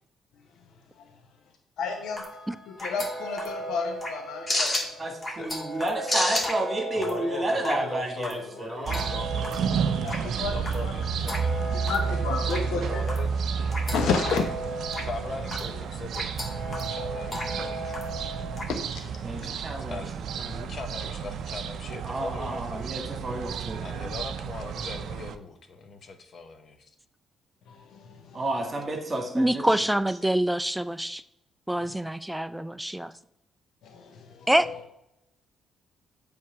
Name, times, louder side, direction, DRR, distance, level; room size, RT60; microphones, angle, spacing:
voice 1, 1.8-2.3 2.7-5.0 10.0-11.0 11.7-13.0 13.9-15.1 18.7-19.6 27.7-28.4 31.8-32.0 33.8-34.8, left 5 dB, 80° left, 4 dB, 0.8 m, -32 dB
sound 1, 1.9-18.6, equal, 25° left, 1.8 m, -34 dB
voice 2, 5.0-9.2 19.2-20.0 22.0-23.9 28.3-29.9, right 2 dB, 30° right, 3 dB, 1.8 m, -31 dB
voice 3, 6.9-11.6 12.4-13.4 15.0-18.0 19.8-22.9 23.8-26.9, left 4 dB, 50° left, 7 dB, 0.8 m, -40 dB
sound 2, 8.9-25.4, right 6 dB, 70° right, 0.4 m, -31 dB
voice 4, 29.3-31.2 31.7-33.1 34.5-34.7, right 1 dB, 5° right, 13 dB, 0.4 m, -25 dB
7.7 x 3.5 x 5.8 m, 0.81 s
cardioid pair, 95°, 0 cm